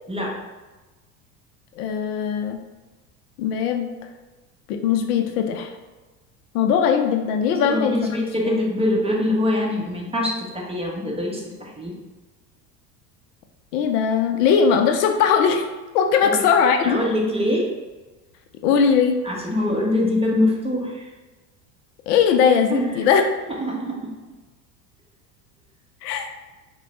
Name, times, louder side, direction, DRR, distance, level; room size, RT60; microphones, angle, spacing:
voice 1, 1.8-2.6 3.4-3.9 4.7-5.7 6.5-7.9 13.7-15.6 15.9-17.0 18.6-19.2 22.1-23.2 26.0-26.3, left 7 dB, 70° left, 6 dB, 0.6 m, -19 dB
voice 2, 7.6-11.9 16.2-16.4 16.8-17.7 19.2-21.1 22.7-23.0 23.6-24.1, left 1 dB, 10° right, -2 dB, 0.9 m, -24 dB
4.3 x 2.3 x 3.9 m, 1.2 s
hypercardioid pair, 85°, 50 cm